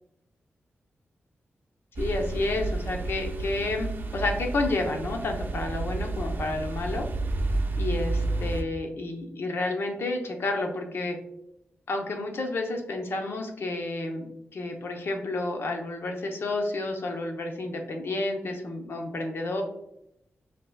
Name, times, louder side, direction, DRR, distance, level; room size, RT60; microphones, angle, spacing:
voice 1, 2.0-7.1 7.8-11.2 11.9-14.2 14.5-19.6, left 2 dB, 65° left, 3 dB, 0.7 m, -30 dB
sound 1, 2.0-8.6, right 2 dB, 50° right, 0.5 m, -30 dB
5.2 x 2.9 x 2.3 m, 0.80 s
wide cardioid pair, 110°, 4 cm